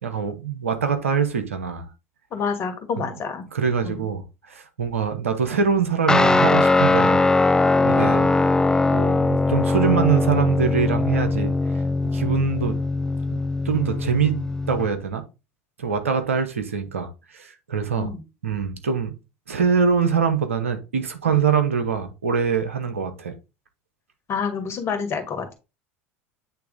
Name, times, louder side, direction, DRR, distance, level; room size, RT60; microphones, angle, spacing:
voice 1, 0.0-1.9 3.5-4.2 4.5-7.2 7.8-8.3 8.9-11.5 12.1-12.8 13.3-13.4 13.6-15.2 15.8-18.1 18.4-19.1 19.5-23.3, right 6 dB, 85° right, 0.9 m, -23 dB
voice 2, 2.3-3.4 3.8-4.1 18.0-18.2 24.3-25.5, left 6 dB, 40° left, 1.8 m, -28 dB
Guitar, 6.1-14.9, left 3 dB, 10° left, 0.3 m, -20 dB
8.3 x 3.5 x 3.6 m
hypercardioid pair, 80°, 7 cm